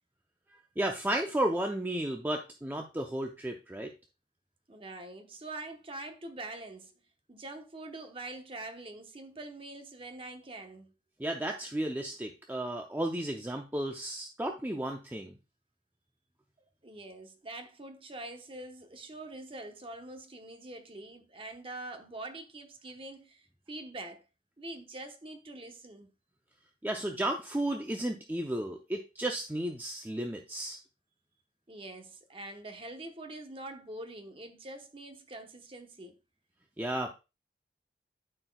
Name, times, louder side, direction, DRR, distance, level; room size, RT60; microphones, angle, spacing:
voice 1, 0.8-3.9 11.2-15.3 26.8-30.8 36.8-37.1, right 1 dB, 10° right, 0.5 m, -33 dB
voice 2, 4.7-6.9 7.3-10.9 16.6-24.2 24.6-26.1 31.7-36.2, right 2 dB, 30° right, 0.9 m, -44 dB
12.5 x 4.4 x 2.2 m
head